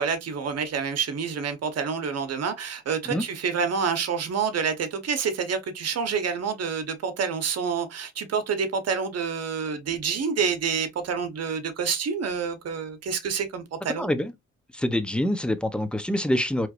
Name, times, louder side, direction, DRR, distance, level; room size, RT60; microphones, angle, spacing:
voice 1, 0.0-14.1, right 6 dB, 55° right, 1.0 m, -28 dB
voice 2, 14.0-14.3 14.7-16.7, left 1 dB, 5° left, 0.7 m, -25 dB
4.5 x 3.2 x 2.5 m
cardioid pair, 90°, 30 cm